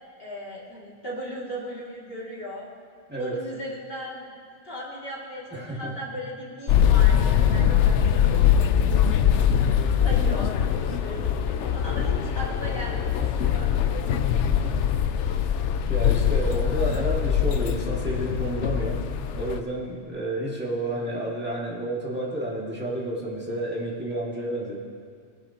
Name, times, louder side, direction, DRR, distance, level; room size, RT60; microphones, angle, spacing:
voice 1, 0.2-2.7 3.2-4.3 4.6-10.5 10.9-14.1, equal, 50° left, -6 dB, 2.6 m, -38 dB
voice 2, 3.1-3.4 5.5-5.9 14.5-14.8 15.9-19.0 19.3-24.8, right 1 dB, 10° right, -5 dB, 2.0 m, -30 dB
sound 1, 6.7-19.6, left 9 dB, 70° left, 0.9 m, -22 dB
20.5 x 11.0 x 2.9 m, 2.1 s
omnidirectional pair, 1.3 m